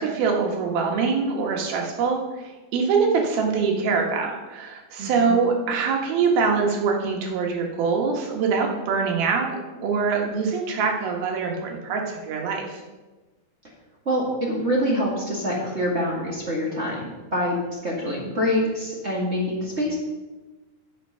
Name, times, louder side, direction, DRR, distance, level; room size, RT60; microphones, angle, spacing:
voice 1, 0.0-2.2 2.7-12.8, right 5 dB, 90° right, 1 dB, 3.3 m, -24 dB
voice 2, 5.0-5.3 14.0-19.9, equal, 30° right, -3 dB, 1.2 m, -25 dB
11.0 x 6.7 x 5.6 m, 1.2 s
omnidirectional pair, 4.2 m